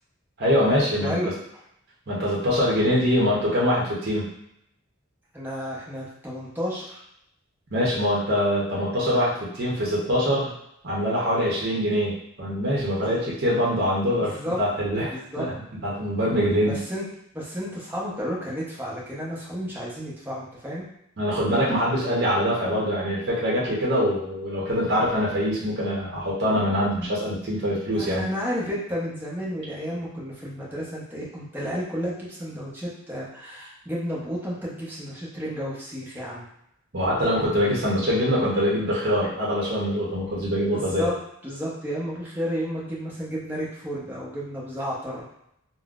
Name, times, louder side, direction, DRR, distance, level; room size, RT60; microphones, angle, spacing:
voice 1, 0.4-1.3 2.1-4.3 7.7-10.5 10.8-15.5 15.8-16.8 21.2-28.2 36.9-41.1, equal, 55° right, -5 dB, 0.8 m, -24 dB
voice 2, 1.0-1.3 5.3-7.0 13.0-13.1 13.5-13.6 14.2-14.6 15.1-15.5 16.7-17.0 17.3-20.9 28.0-36.4 40.7-41.1 41.4-45.3, equal, 10° right, -6 dB, 0.8 m, -32 dB
3.7 x 2.1 x 2.4 m, 0.76 s
head